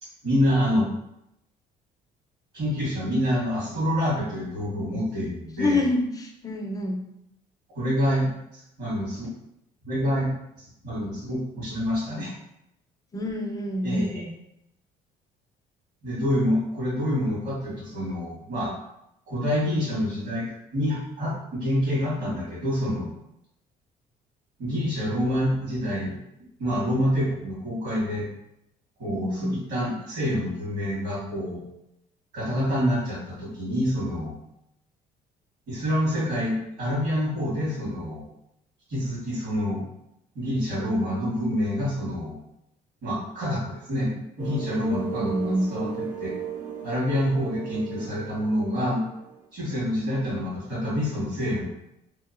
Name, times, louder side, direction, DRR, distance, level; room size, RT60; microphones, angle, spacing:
voice 1, 0.2-0.9 2.5-5.9 7.7-9.3 9.8-10.3 10.8-12.3 13.8-14.3 16.0-18.7 19.3-20.5 20.7-23.1 24.6-26.1 26.6-28.3 29.0-31.6 32.3-34.3 35.7-38.3 38.9-39.8 40.3-42.4 43.0-46.3 46.8-49.0 49.5-51.7, equal, 70° right, -5 dB, 1.5 m, -27 dB
voice 2, 5.6-7.0 13.1-14.3 29.1-29.6 44.9-45.7, left 1 dB, 20° left, 2 dB, 0.5 m, -27 dB
sound 1, 44.4-49.5, right 9 dB, 50° right, 0.6 m, -36 dB
2.8 x 2.4 x 2.4 m, 0.83 s
cardioid pair, 110°, 17 cm